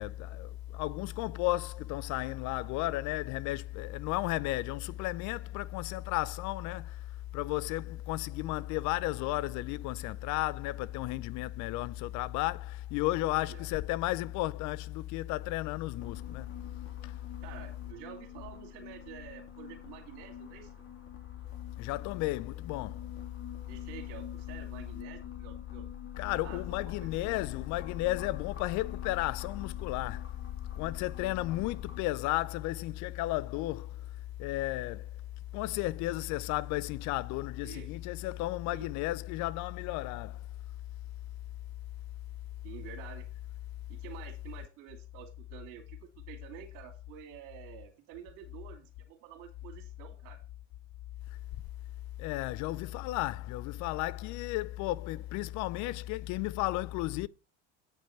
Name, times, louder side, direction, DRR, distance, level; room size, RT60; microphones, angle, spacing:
voice 1, 0.0-7.0 7.3-16.5 17.0-17.1 21.8-23.0 26.2-30.3 30.8-34.0 34.4-35.1 35.5-40.4 52.2-57.3, left 17 dB, 55° left, 0.6 m, -33 dB
sound 1, 15.9-32.0, left 9 dB, 40° left, 3.5 m, -45 dB
voice 2, 17.4-20.7 23.7-25.9 26.2-27.3 37.6-37.9 38.7-38.9 42.6-43.3 43.9-50.4, right 10 dB, 65° right, 2.7 m, -49 dB
8.9 x 5.4 x 5.7 m
hypercardioid pair, 70°, 35 cm